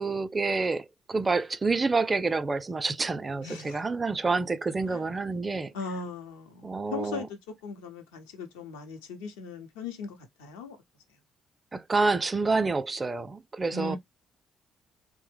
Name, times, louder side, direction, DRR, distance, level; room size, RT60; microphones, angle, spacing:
voice 1, 0.0-5.7 6.6-7.3 11.7-14.0, right 3 dB, 35° right, 0.4 m, -28 dB
voice 2, 3.4-3.8 4.9-5.0 5.7-10.8 13.7-14.0, left 4 dB, 90° left, 0.7 m, -39 dB
3.2 x 2.1 x 3.2 m
hypercardioid pair, 50°, 0 cm